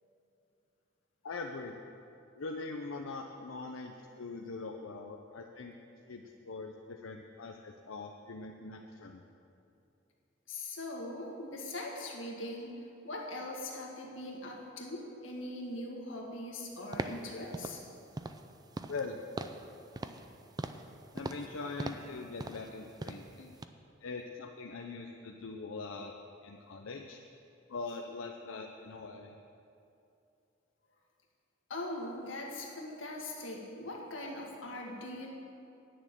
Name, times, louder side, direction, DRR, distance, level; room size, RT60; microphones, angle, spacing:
voice 1, 1.2-1.8 2.4-5.7 6.1-9.2 18.9-19.2 21.1-23.6 24.0-26.2 26.4-27.2 27.7-29.4, left 3 dB, 90° left, 2 dB, 0.6 m, -42 dB
voice 2, 10.5-12.7 13.0-17.8 31.7-35.4, left 1 dB, 70° left, -1 dB, 1.8 m, -41 dB
sound 1, 16.9-17.3 17.5-17.8 18.2-18.5 18.7-19.1 19.4-19.7 20.0-20.3 20.6-20.9 21.2-21.5 21.8-22.1 22.4-22.7 23.0-23.3 23.6-23.7, right 2 dB, 20° right, 0.4 m, -40 dB
10.0 x 6.4 x 9.0 m, 2.7 s
head